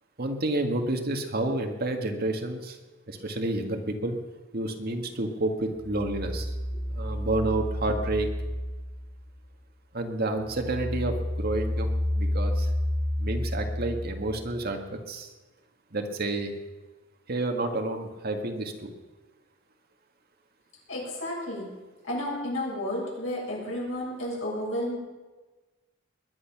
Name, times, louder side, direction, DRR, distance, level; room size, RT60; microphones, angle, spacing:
voice 1, 0.2-2.8 3.1-4.2 4.5-6.5 6.9-8.3 9.9-12.7 13.2-15.3 15.9-16.5 17.3-18.9, right 2 dB, 50° right, 4 dB, 1.8 m, -30 dB
sound 1, 5.8-9.7 10.1-14.6, left 1 dB, ahead, 1.6 m, -30 dB
voice 2, 20.9-21.7 22.0-25.0, left 1 dB, 85° left, -4 dB, 7.1 m, -32 dB
21.0 x 10.5 x 6.0 m, 1.2 s
head